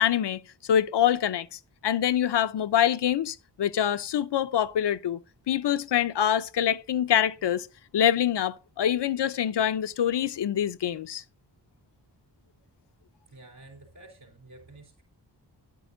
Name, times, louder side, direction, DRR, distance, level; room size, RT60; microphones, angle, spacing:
voice 1, 0.0-5.2 5.5-7.7 7.9-11.2, left 10 dB, 80° left, 0.7 m, -25 dB
voice 2, 13.3-15.0, right 2 dB, 60° right, 3.8 m, -50 dB
11.0 x 11.0 x 2.7 m
wide cardioid pair, 150°, 42 cm